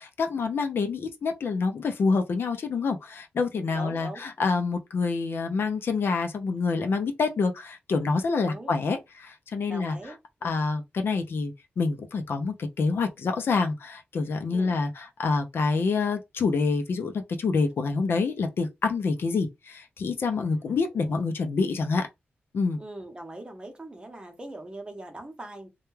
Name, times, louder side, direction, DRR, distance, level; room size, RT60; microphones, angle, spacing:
voice 1, 0.0-10.0 10.4-22.1 22.5-22.8, left 4 dB, 70° left, 0.5 m, -27 dB
voice 2, 3.7-4.5 8.4-8.7 9.7-10.6 14.5-14.8 20.5-21.2 22.8-25.7, right 1 dB, 25° right, 0.8 m, -42 dB
2.2 x 2.1 x 3.1 m
cardioid pair, 80°, 4 cm